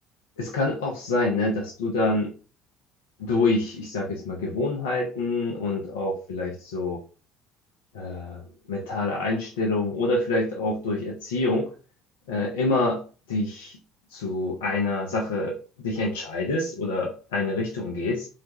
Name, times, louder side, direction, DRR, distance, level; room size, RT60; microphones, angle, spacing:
voice 1, 0.4-2.3 3.2-7.0 7.9-8.4 8.7-11.7 12.3-13.0 13.3-13.8 14.1-18.3, left 2 dB, 80° left, -1 dB, 0.5 m, -26 dB
2.4 x 2.2 x 2.9 m, 0.37 s
hypercardioid pair, 60°, 0 cm